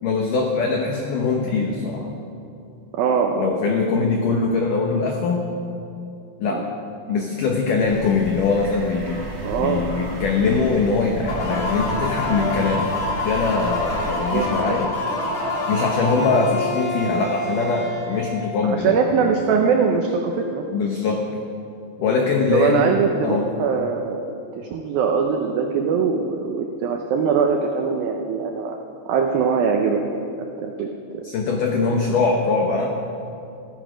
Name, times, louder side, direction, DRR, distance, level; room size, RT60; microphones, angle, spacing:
voice 1, 0.0-2.1 3.4-5.5 6.4-6.6 7.1-9.2 9.6-12.9 13.2-14.9 15.7-19.0 20.7-21.2 22.0-23.0 23.2-23.5 31.2-32.9, left 4 dB, 85° left, 1 dB, 1.8 m, -22 dB
voice 2, 2.9-3.5 6.5-6.6 9.4-9.8 14.3-14.8 18.6-20.7 22.5-28.8 29.1-30.2 30.6-31.2, right 5 dB, 90° right, 3 dB, 2.0 m, -22 dB
sound 1, 7.8-14.5, right 1 dB, 40° right, 1.9 m, -34 dB
sound 2, 11.3-18.8, left 1 dB, 65° left, 4.4 m, -27 dB
15.5 x 13.5 x 5.1 m, 2.7 s
omnidirectional pair, 5.3 m